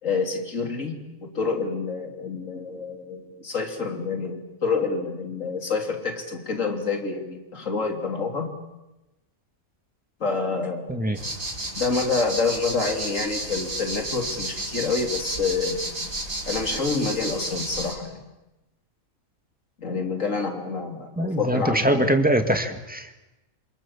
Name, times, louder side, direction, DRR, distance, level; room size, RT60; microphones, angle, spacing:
voice 1, 0.0-8.5 10.2-10.9 11.8-15.8 16.5-18.2 19.8-22.2, left 4 dB, 70° left, 4 dB, 3.6 m, -27 dB
sound 1, 11.1-17.9, right 1 dB, 85° right, 5.8 m, -32 dB
voice 2, 21.2-23.3, right 1 dB, 5° right, 6 dB, 2.0 m, -23 dB
27.5 x 26.5 x 7.4 m, 1.0 s
omnidirectional pair, 1.4 m